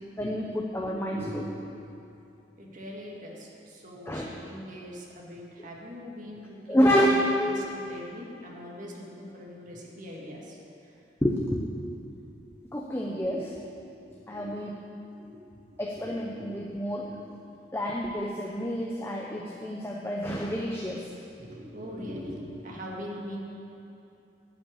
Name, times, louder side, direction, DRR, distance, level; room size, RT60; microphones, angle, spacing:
voice 1, 0.2-1.2 4.1-4.3 5.6-5.7 6.7-7.6 11.2-11.7 12.7-13.4 14.3-14.7 15.8-17.1 17.7-21.1, equal, 15° left, -1 dB, 0.7 m, -28 dB
voice 2, 0.8-1.5 2.1-2.2 2.6-7.0 7.5-10.9 13.2-13.4 13.8-15.4 15.9-17.3 21.4-23.4, equal, 45° right, -3 dB, 2.0 m, -42 dB
12.0 x 5.9 x 8.6 m, 2.7 s
head